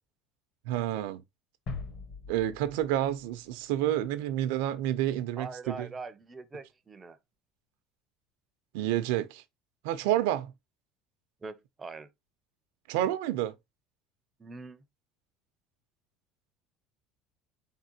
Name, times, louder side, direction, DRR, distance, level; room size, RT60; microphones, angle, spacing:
voice 1, 0.7-1.2 2.3-5.9 8.7-9.4 9.8-10.5 12.9-13.5, right 12 dB, 90° right, 0.6 m, -29 dB
sound 1, 1.7-4.2, left 4 dB, 50° left, 1.2 m, -42 dB
voice 2, 5.4-7.2 11.4-12.1 14.4-14.8, right 3 dB, 15° right, 0.5 m, -43 dB
4.1 x 3.7 x 2.8 m
cardioid pair, 150°, 0 cm